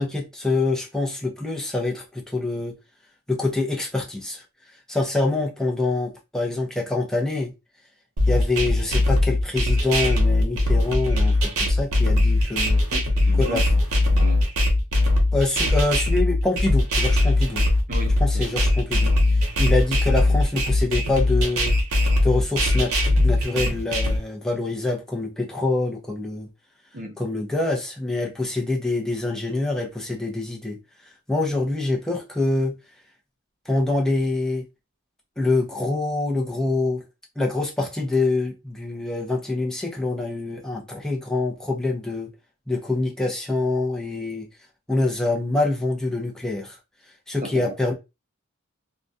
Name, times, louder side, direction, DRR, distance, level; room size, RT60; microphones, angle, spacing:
voice 1, 0.0-2.8 3.3-4.4 4.9-7.5 8.3-12.8 13.4-13.7 15.3-17.6 18.2-21.8 22.2-22.9 23.2-26.5 27.2-32.7 33.7-34.6 35.4-37.0 37.4-42.3 42.7-44.5 44.9-46.8 47.3-47.9, left 2 dB, 5° left, 0.6 m, -25 dB
sound 1, 8.2-24.2, left 1 dB, 85° right, 0.8 m, -20 dB
voice 2, 12.9-13.6 14.1-14.4 17.9-18.6 26.9-27.2 47.4-47.7, right 1 dB, 40° right, 0.6 m, -35 dB
2.3 x 2.2 x 2.6 m
head